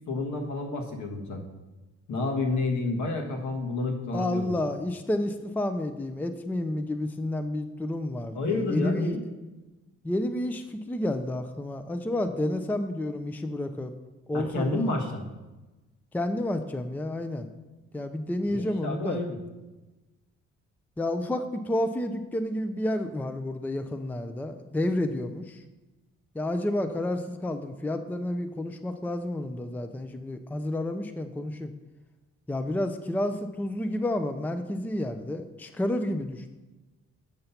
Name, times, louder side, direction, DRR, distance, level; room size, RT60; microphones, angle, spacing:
voice 1, 0.1-1.4 2.1-4.5 8.3-9.2 14.3-15.3 18.5-19.4, left 2 dB, 70° left, 1 dB, 1.6 m, -29 dB
voice 2, 4.1-9.2 10.0-13.9 14.3-14.9 16.1-17.5 17.9-19.2 21.0-25.6 26.3-31.7 32.5-36.5, left 1 dB, 5° left, 8 dB, 0.5 m, -30 dB
7.9 x 5.5 x 5.8 m, 1.1 s
cardioid pair, 90°, 30 cm